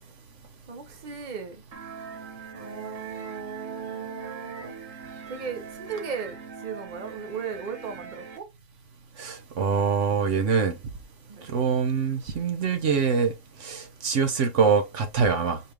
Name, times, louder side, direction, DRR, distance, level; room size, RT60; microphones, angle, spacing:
voice 1, 0.7-1.6 2.5-4.7 5.3-8.5 11.3-11.5, right 6 dB, 40° right, 1.1 m, -36 dB
sound 1, 1.7-8.4, right 6 dB, 90° right, 1.4 m, -42 dB
voice 2, 9.2-10.8 11.5-13.3 13.6-15.6, right 6 dB, 70° right, 1.2 m, -24 dB
4.7 x 3.2 x 3.4 m
omnidirectional pair, 1.3 m